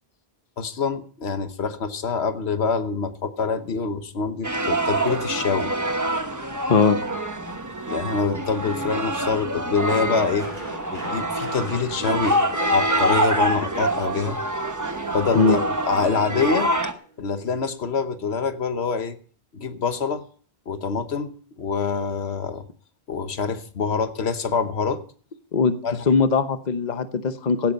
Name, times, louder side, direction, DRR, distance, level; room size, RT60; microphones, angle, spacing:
voice 1, 0.6-5.8 7.9-10.5 10.9-14.4 15.1-16.7 17.2-19.2 19.5-20.2 20.7-22.7 23.1-25.0 25.8-26.0, left 5 dB, 85° left, 10 dB, 1.4 m, -26 dB
sound 1, 4.4-16.9, right 1 dB, 20° right, 1.0 m, -25 dB
sound 2, 7.5-17.6, right 1 dB, 45° right, 5.4 m, -44 dB
voice 2, 26.1-27.7, left 4 dB, 45° left, 10 dB, 1.0 m, -20 dB
16.5 x 9.5 x 5.4 m, 0.43 s
omnidirectional pair, 1.1 m